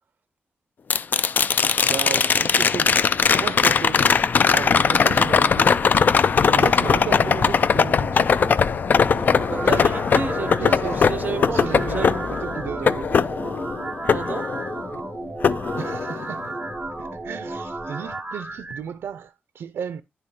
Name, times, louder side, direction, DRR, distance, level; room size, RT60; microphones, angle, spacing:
sound 1, 0.9-15.0 15.4-16.5 18.7-18.8, left 6 dB, 50° left, 0.3 m, -20 dB
voice 1, 1.8-3.1 3.4-4.1 4.5-5.7 6.5-8.6 10.6-11.0 11.5-13.1 15.8-16.6 17.0-20.0, right 8 dB, 85° right, 0.4 m, -34 dB
sound 2, 2.6-14.0, left 1 dB, 75° left, 3.0 m, -42 dB
voice 2, 6.3-6.6 9.1-12.2 14.1-14.5, right 5 dB, 45° right, 0.7 m, -32 dB
sound 3, 8.8-18.8, right 2 dB, 20° right, 0.9 m, -33 dB
10.0 x 4.9 x 2.8 m
wide cardioid pair, 135°, 4 cm